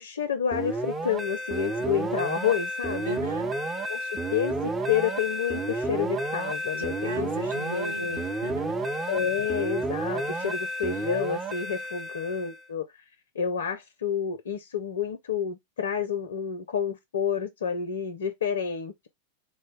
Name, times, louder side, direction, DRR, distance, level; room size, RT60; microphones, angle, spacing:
voice 1, 0.0-3.2 3.9-8.2 9.1-12.9 13.3-19.1, left 7 dB, 65° left, 0.4 m, -29 dB
sound 1, 0.5-12.6, right 1 dB, 15° right, 0.5 m, -31 dB
voice 2, 3.0-3.5 6.7-8.8, right 3 dB, 75° right, 1.1 m, -39 dB
3.9 x 2.1 x 3.2 m
figure-of-eight pair, 90°, 0 cm